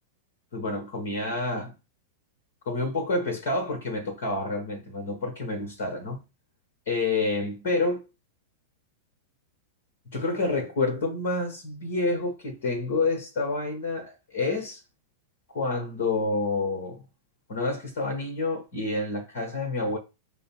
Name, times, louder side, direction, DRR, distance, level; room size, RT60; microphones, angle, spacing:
voice 1, 0.5-1.7 2.6-6.2 6.9-8.0 10.1-14.8 15.5-17.0 17.5-20.0, left 3 dB, 60° left, 1.1 m, -28 dB
5.0 x 2.0 x 4.3 m
figure-of-eight pair, 95°, 0 cm